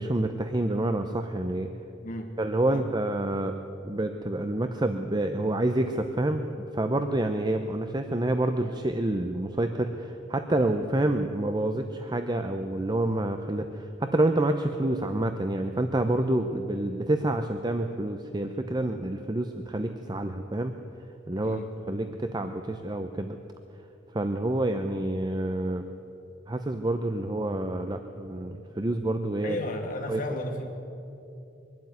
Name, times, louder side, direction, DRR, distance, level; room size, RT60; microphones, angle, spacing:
voice 1, 0.0-1.7 2.4-3.6 3.8-20.7 21.3-21.6 21.9-23.3 24.1-25.8 26.5-29.6 30.1-30.2, right 1 dB, 25° right, 7 dB, 0.7 m, -28 dB
voice 2, 2.0-2.3 2.7-2.9 21.4-21.7 29.4-30.7, left 1 dB, 45° left, 3 dB, 2.6 m, -34 dB
23.0 x 12.0 x 9.5 m, 2.8 s
head